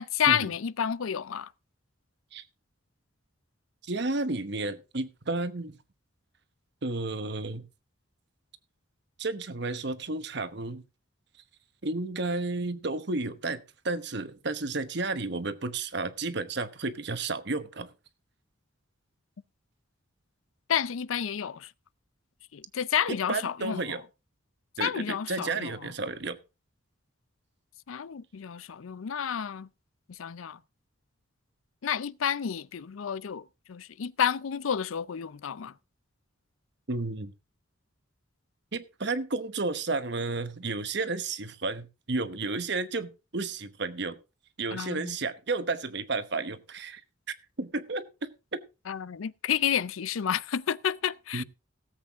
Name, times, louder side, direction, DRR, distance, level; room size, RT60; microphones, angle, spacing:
voice 1, 0.0-1.5 20.7-21.7 22.5-23.8 24.8-25.7 27.9-29.7 30.1-30.6 31.8-35.7 44.7-45.2 48.9-51.4, left 8 dB, 90° left, 0.5 m, -30 dB
voice 2, 3.8-5.7 6.8-7.7 9.2-10.8 11.8-17.9 23.1-24.0 24.8-26.4 36.9-37.3 38.7-44.2 44.6-47.0 47.6-48.6 51.3-51.4, right 3 dB, 55° right, 1.1 m, -32 dB
17.5 x 8.0 x 3.6 m
head